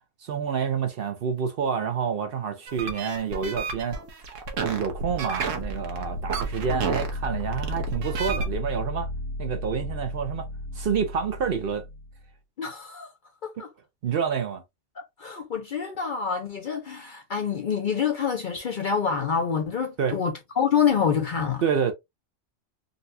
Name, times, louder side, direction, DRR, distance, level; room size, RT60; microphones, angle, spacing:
voice 1, 0.2-4.0 4.6-9.1 9.4-10.5 10.7-11.8 14.0-14.6 20.0-20.2 21.6-21.9, right 7 dB, 55° right, 0.7 m, -28 dB
sound 1, 2.7-8.5, right 4 dB, 85° right, 1.2 m, -31 dB
sound 2, 4.5-12.3, left 1 dB, 85° left, 1.0 m, -35 dB
voice 2, 12.6-13.1 13.4-13.7 15.0-21.6, left 7 dB, 55° left, 0.6 m, -27 dB
3.9 x 2.3 x 2.6 m
omnidirectional pair, 1.3 m